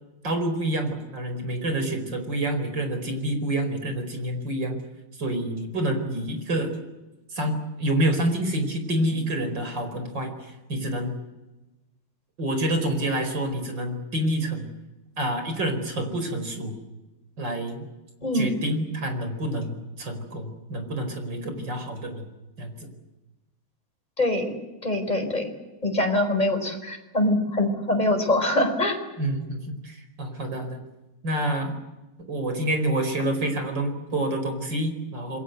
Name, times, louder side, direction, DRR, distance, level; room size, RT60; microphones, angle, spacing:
voice 1, 0.2-4.8 5.2-6.7 7.3-11.1 12.4-14.7 15.2-16.8 17.4-17.9 18.3-22.3 22.6-22.9 29.2-30.8 31.2-31.8 32.3-35.4, right 1 dB, 60° right, 7 dB, 5.3 m, -28 dB
voice 2, 24.2-24.6 24.8-25.4 25.8-29.0, left 1 dB, 20° left, 4 dB, 4.9 m, -23 dB
27.5 x 22.0 x 8.0 m, 1.1 s
omnidirectional pair, 2.2 m